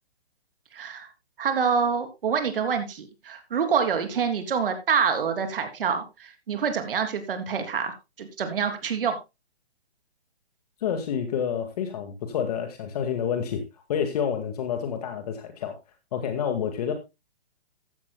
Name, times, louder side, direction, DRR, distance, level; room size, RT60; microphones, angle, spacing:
voice 1, 0.7-1.1 1.4-9.2, right 6 dB, 55° right, 7 dB, 3.3 m, -26 dB
voice 2, 10.8-13.6 13.9-15.8 16.1-16.9, left 8 dB, 40° left, 7 dB, 2.0 m, -28 dB
15.0 x 12.5 x 2.2 m, 0.24 s
hypercardioid pair, 160°, 32 cm